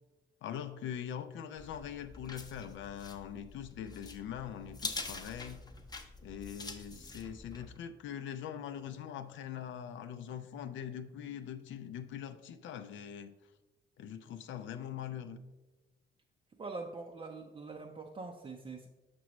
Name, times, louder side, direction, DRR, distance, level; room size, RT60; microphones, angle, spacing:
voice 1, 0.4-5.7 6.2-13.3 14.0-15.4, left 9 dB, 75° left, 9 dB, 0.5 m, -42 dB
sound 1, 1.6-7.8, left 3 dB, 20° left, 0.7 m, -45 dB
voice 2, 16.6-18.9, right 3 dB, 25° right, 1 dB, 0.5 m, -43 dB
6.1 x 6.0 x 3.1 m, 1.1 s
cardioid pair, 90°, 20 cm